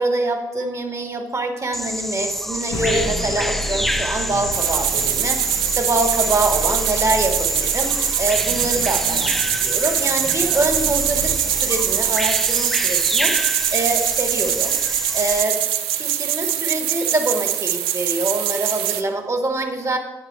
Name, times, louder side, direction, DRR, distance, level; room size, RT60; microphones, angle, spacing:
voice 1, 0.0-11.3 11.6-15.5 16.0-20.0, right 2 dB, 35° right, 5 dB, 1.4 m, -25 dB
Bird vocalization bird call bird song, 1.7-15.4, equal, ahead, 0.4 m, -27 dB
sound 1, 2.7-13.6, left 1 dB, 70° left, 1.0 m, -32 dB
sound 2, 4.5-19.0, right 12 dB, 85° right, 0.4 m, -23 dB
8.8 x 3.8 x 6.6 m, 1.1 s
hypercardioid pair, 45°, 9 cm